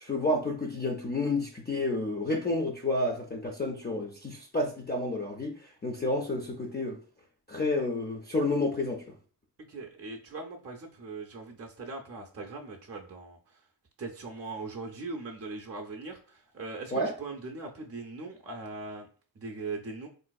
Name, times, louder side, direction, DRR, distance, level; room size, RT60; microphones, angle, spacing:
voice 1, 0.0-5.5 5.8-7.0 7.5-9.0 16.9-17.1, left 2 dB, 25° left, 1 dB, 0.4 m, -30 dB
voice 2, 9.7-13.6 14.0-19.1 19.4-20.1, right 3 dB, 35° right, 3 dB, 0.5 m, -40 dB
3.8 x 2.5 x 2.2 m, 0.41 s
wide cardioid pair, 90°, 42 cm